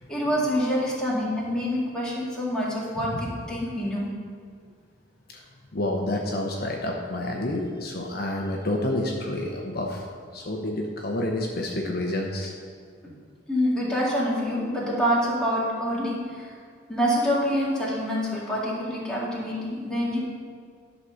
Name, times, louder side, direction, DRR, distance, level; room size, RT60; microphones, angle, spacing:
voice 1, 0.1-4.1 13.5-16.5 16.9-20.2, equal, 5° left, -6 dB, 2.1 m, -26 dB
voice 2, 3.0-3.4 5.3-5.4 5.7-10.1 10.3-12.5, left 1 dB, 55° left, 0 dB, 0.9 m, -29 dB
11.5 x 4.2 x 6.5 m, 2.1 s
head